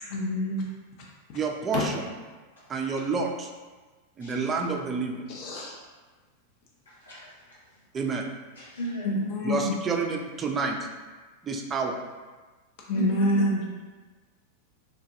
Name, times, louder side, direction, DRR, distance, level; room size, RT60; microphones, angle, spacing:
voice 1, 0.0-0.7 1.7-1.8 5.3-5.7 9.0-9.7 12.9-13.6, left 1 dB, 45° left, -3 dB, 0.5 m, -26 dB
voice 2, 1.3-2.1 2.7-3.5 4.2-5.2 7.9-8.3 9.4-10.8 11.4-12.0, right 4 dB, 20° right, 3 dB, 0.3 m, -29 dB
voice 3, 4.2-4.5 6.9-7.7 8.5-9.2 12.9-13.3, right 1 dB, 70° left, -7 dB, 1.0 m, -36 dB
3.3 x 2.2 x 2.6 m, 1.3 s
figure-of-eight pair, 90°, 0 cm